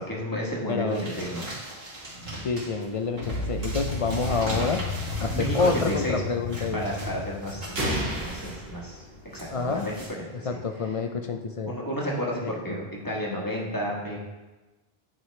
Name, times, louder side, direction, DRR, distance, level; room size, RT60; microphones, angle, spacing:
voice 1, 0.0-1.5 5.2-6.2 6.7-9.0 9.3-9.9 10.2-10.6 11.6-14.2, equal, 20° left, -3 dB, 1.3 m, -32 dB
voice 2, 0.7-1.1 2.4-6.9 9.5-9.9 10.4-11.7 12.4-12.9, left 4 dB, 50° left, 6 dB, 0.4 m, -28 dB
sound 1, 0.9-10.1, right 1 dB, 60° right, 2.4 m, -39 dB
sound 2, 3.2-9.3, left 3 dB, 70° left, 1.1 m, -34 dB
sound 3, 7.7-9.7, right 1 dB, 75° right, 1.7 m, -31 dB
9.9 x 4.8 x 3.2 m, 1.1 s
omnidirectional pair, 1.0 m